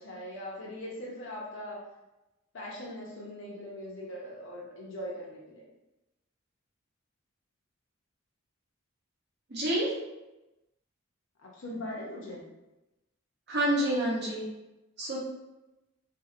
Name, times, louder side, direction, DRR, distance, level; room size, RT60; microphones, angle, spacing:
voice 1, 0.0-1.8 2.5-5.7 11.4-12.4, left 1 dB, 60° left, -3 dB, 0.7 m, -40 dB
voice 2, 9.5-9.9 13.5-14.4 15.0-15.2, right 1 dB, 50° right, -5 dB, 0.7 m, -28 dB
2.6 x 2.2 x 2.5 m, 0.99 s
head